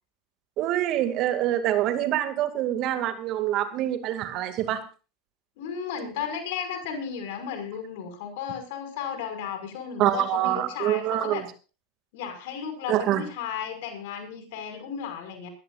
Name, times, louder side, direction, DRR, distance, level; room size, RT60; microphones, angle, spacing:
voice 1, 0.6-4.8 10.0-11.5 12.9-13.3, right 12 dB, 50° right, 8 dB, 2.3 m, -25 dB
voice 2, 5.6-11.4 12.1-15.5, left 7 dB, 65° left, 7 dB, 5.6 m, -34 dB
21.5 x 16.0 x 2.5 m, 0.35 s
hypercardioid pair, 85°, 0 cm